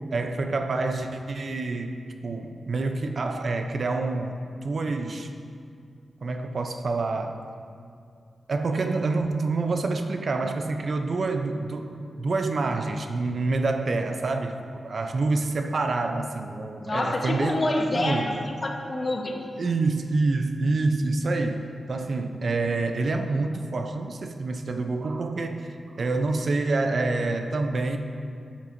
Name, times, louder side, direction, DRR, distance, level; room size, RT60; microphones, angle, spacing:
voice 1, 0.1-5.3 6.2-7.4 8.5-17.6 17.9-18.3 19.6-28.0, right 3 dB, 55° right, 6 dB, 0.5 m, -27 dB
voice 2, 16.8-18.3 18.6-19.4, left 2 dB, 35° left, 2 dB, 0.9 m, -27 dB
12.5 x 8.4 x 2.6 m, 2.4 s
wide cardioid pair, 105°, 0 cm